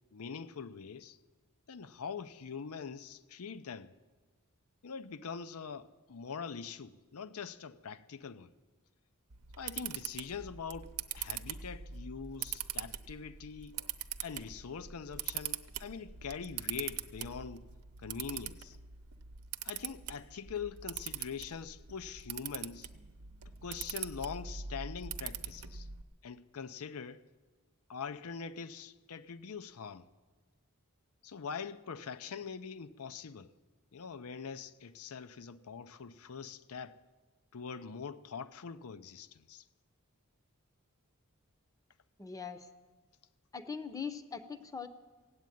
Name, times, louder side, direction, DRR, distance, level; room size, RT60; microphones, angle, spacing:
voice 1, 0.1-1.2 1.7-3.9 4.8-8.5 9.6-13.8 14.2-17.7 18.0-18.8 19.6-22.9 23.6-25.9 26.2-27.2 27.9-30.1 31.2-33.5 33.9-37.0 37.5-39.6, left 6 dB, 70° left, 0.6 m, -43 dB
Camera, 9.3-26.0, right 9 dB, 85° right, 0.8 m, -43 dB
voice 2, 42.2-42.7 43.5-44.9, left 6 dB, 15° left, 0.7 m, -41 dB
16.5 x 8.4 x 9.2 m
head